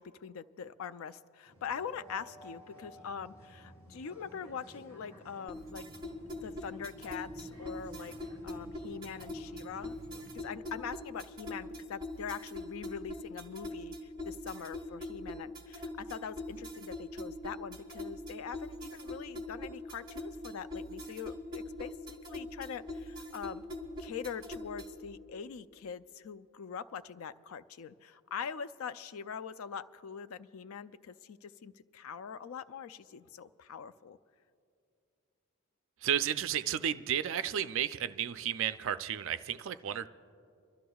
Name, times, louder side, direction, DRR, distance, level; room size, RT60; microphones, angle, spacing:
voice 1, 0.0-5.8 6.4-8.2 8.4-23.7 24.0-34.2, left 7 dB, 75° left, 13 dB, 0.4 m, -43 dB
sound 1, 1.5-10.4, equal, 15° left, 3.3 m, -54 dB
sound 2, 5.5-25.0, left 1 dB, 20° right, 1.0 m, -43 dB
voice 2, 36.0-40.1, right 9 dB, 60° right, 12 dB, 0.4 m, -32 dB
27.5 x 12.5 x 2.3 m, 2.6 s
head